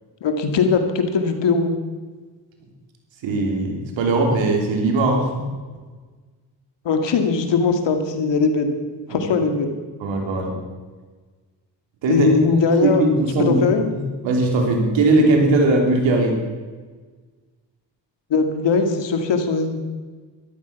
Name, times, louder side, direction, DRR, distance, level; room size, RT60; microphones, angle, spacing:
voice 1, 0.2-1.7 6.8-8.8 9.1-9.7 12.1-13.0 13.4-13.9 18.3-19.8, left 4 dB, 75° left, 6 dB, 2.2 m, -20 dB
voice 2, 3.2-5.4 9.1-9.2 10.0-10.5 12.0-12.3 12.8-13.6 13.9-16.3, right 2 dB, 90° right, 3 dB, 3.1 m, -19 dB
13.5 x 13.0 x 5.9 m, 1.4 s
supercardioid pair, 60°, 44 cm